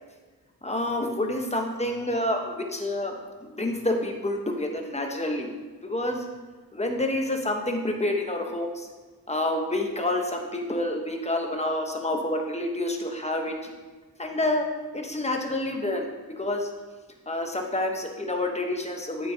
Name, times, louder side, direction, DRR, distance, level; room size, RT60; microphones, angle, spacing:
voice 1, 0.6-3.2 3.6-5.5 5.8-6.3 6.7-8.9 9.3-13.7 14.2-14.7 14.9-16.7 17.3-19.3, left 1 dB, 15° left, 3 dB, 1.0 m, -28 dB
8.6 x 6.0 x 2.8 m, 1.3 s
wide cardioid pair, 70°, 38 cm